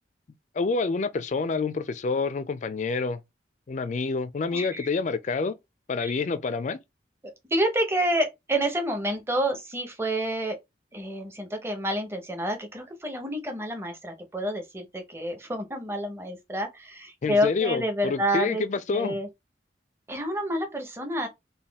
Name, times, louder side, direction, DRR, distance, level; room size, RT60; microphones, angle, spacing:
voice 1, 0.5-3.2 3.7-5.6 5.9-6.8 17.2-19.2, left 4 dB, 40° left, 0.3 m, -28 dB
voice 2, 4.5-4.9 6.0-6.1 7.5-10.6 10.9-18.7 18.9-19.3 20.1-21.3, equal, 15° right, 0.8 m, -28 dB
4.1 x 2.2 x 3.4 m
head